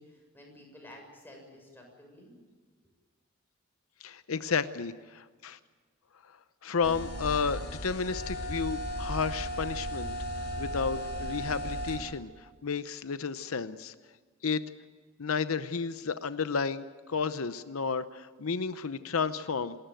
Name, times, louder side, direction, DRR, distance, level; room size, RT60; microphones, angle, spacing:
voice 1, 0.0-2.4, left 1 dB, 10° left, 0 dB, 7.0 m, -52 dB
voice 2, 4.0-5.6 6.6-10.1 10.6-13.9 14.4-14.6 15.2-16.8 17.1-19.8, left 5 dB, 90° left, 13 dB, 0.7 m, -32 dB
sound 1, 6.8-12.0, equal, 50° left, 5.3 m, -36 dB
27.5 x 13.5 x 9.1 m, 1.5 s
head